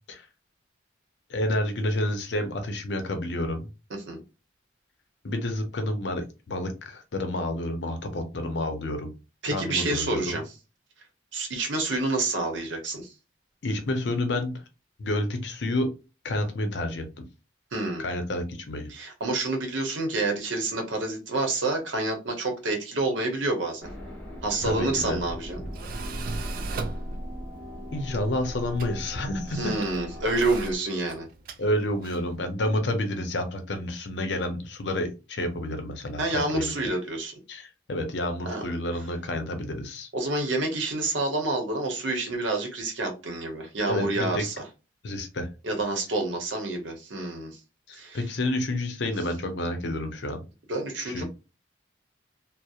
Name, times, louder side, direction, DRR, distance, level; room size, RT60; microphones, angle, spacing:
voice 1, 1.3-3.7 5.2-9.1 9.5-10.4 13.6-14.6 15.0-15.9 16.2-17.2 18.0-18.9 24.6-25.2 26.2-26.5 27.9-29.7 31.6-36.7 37.5-40.1 43.9-44.4 45.0-45.5 47.9-50.4 51.1-51.2, left 1 dB, 65° left, 7 dB, 0.6 m, -29 dB
voice 2, 3.9-4.2 9.4-10.4 11.3-13.1 17.7-18.0 18.9-23.9 24.4-25.6 29.5-31.3 36.2-37.3 38.5-38.6 40.1-44.5 45.6-47.6 47.9-48.2 50.7-51.2, right 2 dB, 75° right, 3 dB, 0.8 m, -28 dB
sound 1, 23.8-30.8, equal, 5° left, 0.8 m, -38 dB
Tools, 24.4-32.4, right 3 dB, 45° right, 0.3 m, -40 dB
2.8 x 2.0 x 2.3 m, 0.30 s
head